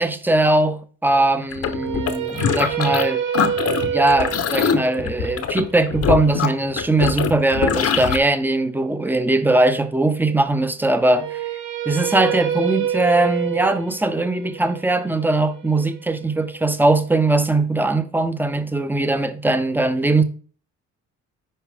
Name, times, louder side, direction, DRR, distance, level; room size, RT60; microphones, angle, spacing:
voice 1, 0.0-3.2 3.8-11.4 11.9-20.2, right 2 dB, 5° right, 0.8 m, -20 dB
sound 1, 1.5-3.1 3.3-8.2, left 7 dB, 50° left, 1.0 m, -23 dB
sound 2, 1.6-7.7 11.0-17.0, right 9 dB, 85° right, 1.1 m, -28 dB
9.9 x 4.8 x 3.6 m
cardioid pair, 90°, 30 cm